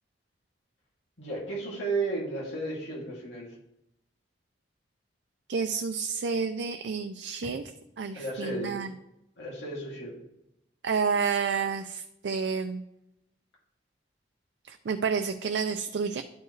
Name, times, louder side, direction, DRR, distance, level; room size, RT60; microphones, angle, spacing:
voice 1, 1.2-3.6 8.1-8.9 9.4-10.2, right 2 dB, 85° left, -5 dB, 2.7 m, -33 dB
voice 2, 5.5-7.6 8.0-8.9 10.8-12.8 14.7-16.2, right 5 dB, 85° right, 7 dB, 0.4 m, -30 dB
11.0 x 4.6 x 3.2 m, 0.85 s
head